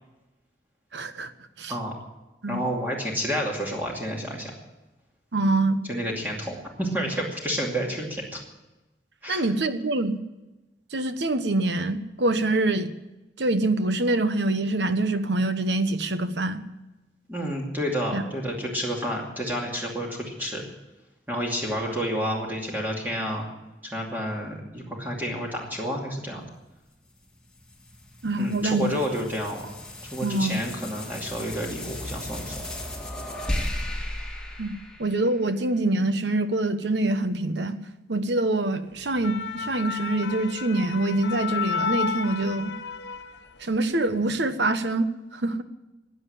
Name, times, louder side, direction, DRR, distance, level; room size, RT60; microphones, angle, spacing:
voice 1, 0.9-1.3 1.6-1.7 2.4-2.6 5.3-5.8 9.3-10.2 10.9-12.9 13.4-16.6 18.1-18.2 28.2-28.9 30.2-30.6 34.6-37.8 38.1-42.7 43.6-45.6, right 2 dB, 90° right, 10 dB, 1.2 m, -25 dB
voice 2, 2.5-4.5 5.9-8.4 9.2-9.5 17.3-20.6 21.3-23.5 23.9-26.5 28.4-29.7 30.1-32.5, equal, 10° right, -2 dB, 2.5 m, -30 dB
sound 1, 27.1-35.7, left 1 dB, 5° left, 2.2 m, -35 dB
sound 2, 39.0-43.8 44.1-44.3, left 6 dB, 85° left, 0.9 m, -32 dB
15.5 x 9.8 x 8.5 m, 1.1 s
head